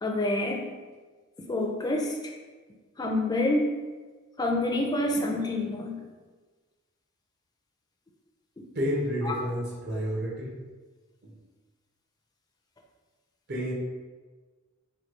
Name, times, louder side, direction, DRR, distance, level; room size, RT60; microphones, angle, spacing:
voice 1, 0.0-0.6 1.5-2.1 3.0-3.7 4.4-6.0 9.3-9.4, left 2 dB, 20° left, 0 dB, 0.4 m, -27 dB
voice 2, 8.7-10.5 11.2-11.3 13.5-13.7, equal, 50° right, -5 dB, 0.9 m, -30 dB
3.2 x 2.3 x 3.1 m, 1.4 s
head